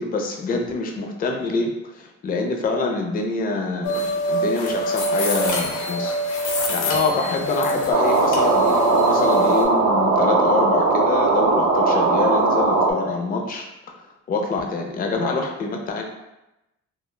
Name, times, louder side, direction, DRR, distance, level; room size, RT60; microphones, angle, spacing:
voice 1, 0.0-6.1 6.7-13.7 14.3-16.0, left 3 dB, 30° left, 2 dB, 0.4 m, -25 dB
sound 1, 3.8-9.7, equal, 90° left, 0.6 m, -24 dB
sound 2, 7.9-12.9, right 3 dB, 60° right, 0.5 m, -19 dB
2.1 x 2.0 x 3.0 m, 0.93 s
cardioid pair, 90°, 30 cm